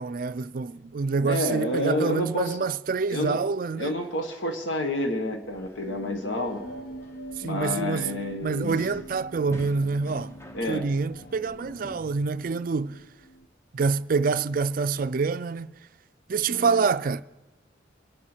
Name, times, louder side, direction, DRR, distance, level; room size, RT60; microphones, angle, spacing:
voice 1, 0.0-3.9 7.4-10.4 10.7-13.0 13.7-15.7 16.3-17.2, right 4 dB, 45° right, 0.4 m, -27 dB
voice 2, 1.2-2.7 3.1-3.4 3.7-6.6 7.4-8.7 10.5-10.9 16.5-16.9, left 1 dB, 90° left, 1.5 m, -29 dB
sound 1, 5.4-12.0, left 1 dB, 15° left, 0.8 m, -47 dB
sound 2, 5.8-13.5, equal, 55° left, 0.7 m, -44 dB
24.0 x 10.5 x 4.5 m
head